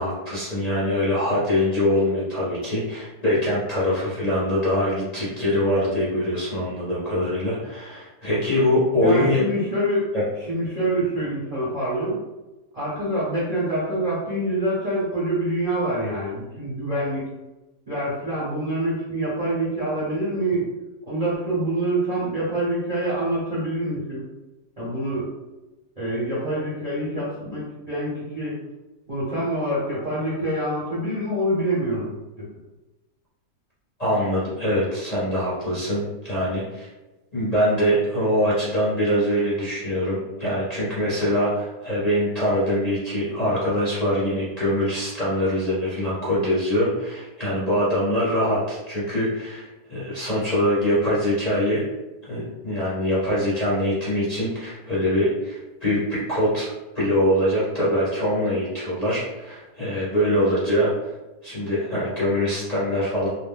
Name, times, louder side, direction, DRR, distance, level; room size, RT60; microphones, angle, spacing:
voice 1, 0.0-9.4 10.1-10.3 34.0-36.9 37.3-51.9 52.2-60.9 61.4-63.3, equal, 35° left, -9 dB, 0.8 m, -23 dB
voice 2, 9.0-10.1 10.4-12.2 12.7-17.2 17.9-20.7 21.1-24.2 24.8-25.3 26.0-28.6 29.1-32.4, right 1 dB, 35° right, -8 dB, 0.7 m, -26 dB
2.6 x 2.1 x 3.5 m, 1.1 s
omnidirectional pair, 1.6 m